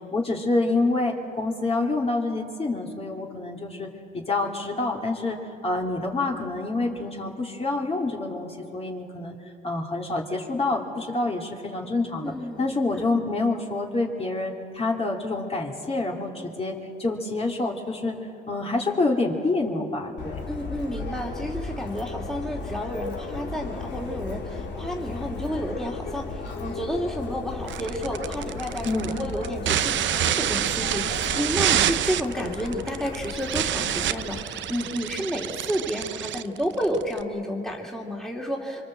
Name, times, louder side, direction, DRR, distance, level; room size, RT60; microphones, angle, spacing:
voice 1, 0.1-3.9 4.3-5.4 5.6-9.3 9.6-18.2 18.5-20.4 28.8-29.3, left 2 dB, 30° left, 0 dB, 3.0 m, -27 dB
voice 2, 12.2-13.0 20.5-38.9, equal, ahead, -1 dB, 2.8 m, -31 dB
Subway metro underground, 20.2-34.4, left 4 dB, 65° left, 3.2 m, -36 dB
sound 1, 27.7-37.2, right 11 dB, 70° right, 0.7 m, -27 dB
24.5 x 24.5 x 7.8 m, 2.6 s
cardioid pair, 90°, 20 cm